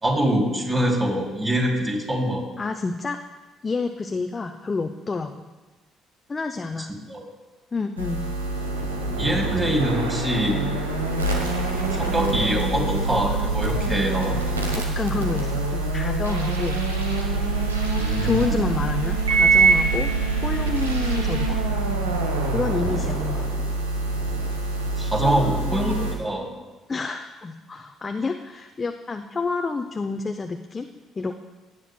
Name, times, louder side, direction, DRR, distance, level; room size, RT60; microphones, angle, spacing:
voice 1, 0.0-2.4 6.9-7.2 9.2-10.7 12.0-14.4 18.0-18.7 25.0-26.5, right 1 dB, 25° right, -1 dB, 2.9 m, -24 dB
voice 2, 2.6-3.2 3.6-5.5 6.3-6.9 7.7-8.3 14.7-16.8 18.2-20.1 20.4-21.6 22.5-23.5 25.2-26.0 26.9-30.9 31.2-31.4, left 4 dB, 30° left, 5 dB, 0.6 m, -29 dB
sound 1, 8.0-26.1, right 3 dB, 90° right, 1.1 m, -24 dB
17.0 x 9.8 x 2.3 m, 1.2 s
figure-of-eight pair, 50°, 0 cm